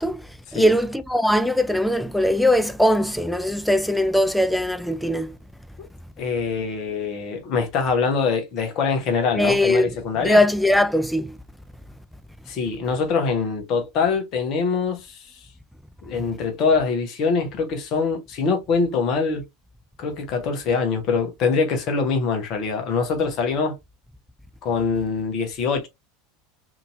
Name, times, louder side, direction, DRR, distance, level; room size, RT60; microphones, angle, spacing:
voice 1, 0.0-5.4 9.3-10.0 10.2-11.4, left 1 dB, ahead, 0.4 m, -20 dB
voice 2, 6.2-10.4 12.5-15.4 16.0-19.4 20.0-23.7 24.6-25.9, left 5 dB, 45° left, 0.9 m, -24 dB
2.8 x 2.7 x 2.5 m
figure-of-eight pair, 80°, 0 cm